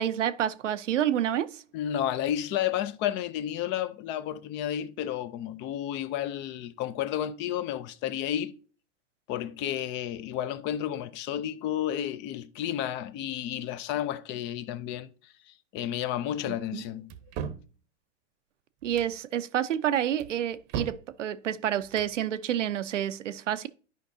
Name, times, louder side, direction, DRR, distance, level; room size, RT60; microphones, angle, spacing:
voice 1, 0.0-1.6 16.5-16.8 18.8-23.7, right 10 dB, 90° right, 0.7 m, -29 dB
voice 2, 1.7-8.6 9.3-15.1 15.5-17.1, left 11 dB, 30° left, 0.5 m, -31 dB
sound 1, 17.1-17.7 18.8-19.2 20.2-21.1 21.8-22.2, right 7 dB, 40° right, 0.8 m, -37 dB
11.0 x 5.2 x 2.7 m
hypercardioid pair, 115°, 36 cm